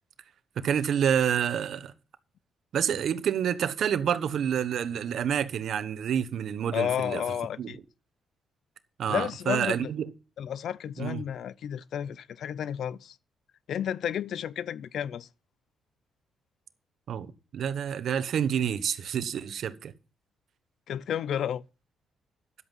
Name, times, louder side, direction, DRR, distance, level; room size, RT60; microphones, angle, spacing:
voice 1, 0.6-1.9 2.7-7.2 7.6-7.7 9.0-10.1 11.0-11.2 17.1-19.9, right 8 dB, 65° right, 1.1 m, -28 dB
voice 2, 6.7-7.8 9.1-9.9 10.4-13.2 13.7-15.3 20.9-21.6, left 9 dB, 70° left, 0.5 m, -32 dB
11.0 x 8.1 x 5.6 m
cardioid pair, 90°, 0 cm